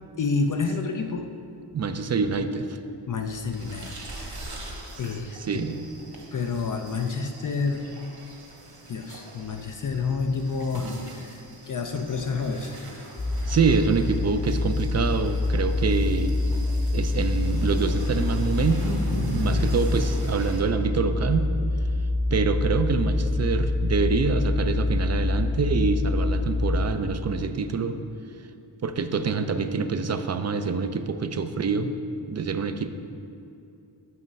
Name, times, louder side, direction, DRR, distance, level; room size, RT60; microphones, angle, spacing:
voice 1, 0.2-1.3 3.1-4.5 5.0-5.7 6.3-7.9 8.9-11.4 11.7-12.9, left 4 dB, 45° left, 5 dB, 0.5 m, -29 dB
voice 2, 1.7-2.8 5.5-5.8 13.5-16.4 16.9-21.5 22.3-28.0 28.8-31.9 32.3-32.9, right 5 dB, 35° right, 9 dB, 0.4 m, -26 dB
sound 1, 3.5-20.6, equal, 55° right, 1.4 m, -40 dB
sound 2, 13.2-26.9, left 2 dB, 65° left, 1.2 m, -26 dB
7.6 x 3.0 x 5.3 m, 2.7 s
cardioid pair, 40°, 45 cm